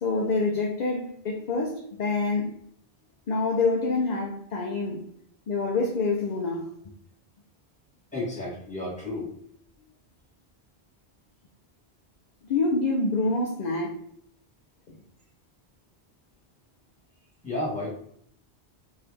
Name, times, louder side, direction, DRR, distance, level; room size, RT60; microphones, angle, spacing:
voice 1, 0.0-2.5 3.3-5.0 5.5-6.7 12.4-13.9 14.9-15.0, left 3 dB, 55° left, 0.5 m, -26 dB
voice 2, 8.1-9.3 17.4-17.9, left 2 dB, 5° left, 1.4 m, -32 dB
2.9 x 2.7 x 3.4 m
omnidirectional pair, 1.1 m